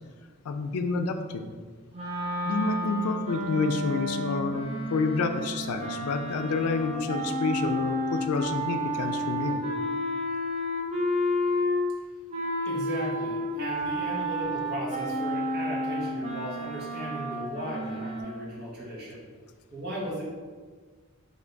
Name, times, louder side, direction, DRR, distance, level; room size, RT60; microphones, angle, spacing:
voice 1, 0.4-1.5 2.4-9.7, left 4 dB, 90° left, 7 dB, 0.4 m, -29 dB
sound 1, 1.9-12.0 12.3-18.2, equal, 30° right, 0.6 m, -31 dB
voice 2, 12.6-19.3 19.7-20.2, equal, 50° right, -5 dB, 0.9 m, -36 dB
3.3 x 2.7 x 3.9 m, 1.5 s
head